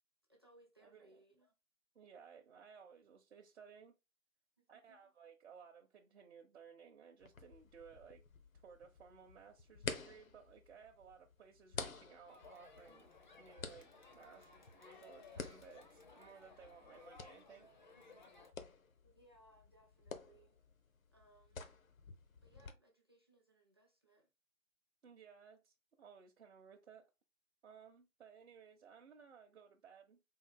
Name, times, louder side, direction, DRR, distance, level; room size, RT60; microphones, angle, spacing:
voice 1, 0.3-1.5 4.6-5.1 19.0-20.6 21.1-21.6 22.4-24.3, right 1 dB, 20° right, 0.5 m, -68 dB
voice 2, 0.8-1.5 1.9-4.0 4.7-8.2 8.6-17.7 25.0-27.1 27.6-30.2, right 6 dB, 55° right, 0.7 m, -59 dB
sound 1, 7.2-22.7, left 5 dB, 70° left, 0.8 m, -51 dB
Crowd, 12.3-18.5, left 4 dB, 35° left, 0.5 m, -60 dB
3.9 x 2.3 x 3.6 m
figure-of-eight pair, 150°, 42 cm